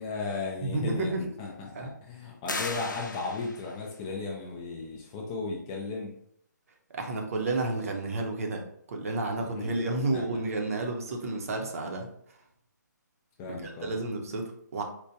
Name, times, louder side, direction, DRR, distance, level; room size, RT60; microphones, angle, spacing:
voice 1, 0.0-6.1 9.4-9.7 10.1-10.2 13.4-13.9, left 3 dB, 15° left, -1 dB, 0.3 m, -36 dB
voice 2, 0.6-1.2 1.7-1.9 2.5-2.6 6.9-12.1 13.5-14.8, right 2 dB, 50° right, 2 dB, 0.7 m, -31 dB
sound 1, 2.5-3.8, left 3 dB, 80° left, 0.6 m, -36 dB
4.4 x 2.2 x 2.6 m, 0.68 s
figure-of-eight pair, 150°, 10 cm